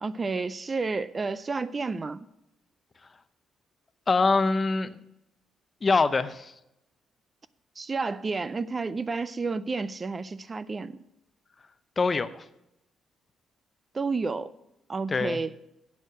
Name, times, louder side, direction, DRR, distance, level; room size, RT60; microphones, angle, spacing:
voice 1, 0.0-2.3 7.8-11.0 13.9-14.5 14.9-15.5, right 4 dB, 30° right, 0.4 m, -31 dB
voice 2, 4.1-5.0 5.8-6.5 12.0-12.4 15.1-15.4, left 4 dB, 30° left, 0.6 m, -24 dB
8.4 x 6.4 x 7.5 m
cardioid pair, 90°, 0 cm